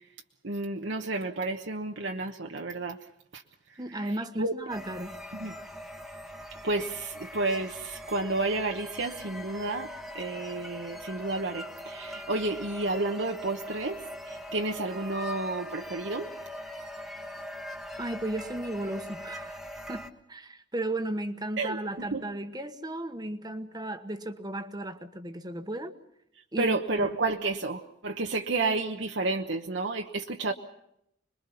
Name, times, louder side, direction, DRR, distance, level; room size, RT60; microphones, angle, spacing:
voice 1, 0.4-3.0 3.3-3.4 4.0-4.1 4.4-4.5 5.3-5.6 6.6-9.9 10.1-16.3 21.6-21.8 22.1-22.2 26.6-30.5, right 3 dB, 70° right, 3 dB, 1.1 m, -31 dB
voice 2, 3.8-5.2 18.0-19.6 19.9-25.9 26.5-27.1, right 1 dB, 20° right, 9 dB, 1.2 m, -35 dB
sound 1, 4.7-20.1, equal, ahead, 1.3 m, -41 dB
26.5 x 22.0 x 5.6 m, 0.76 s
head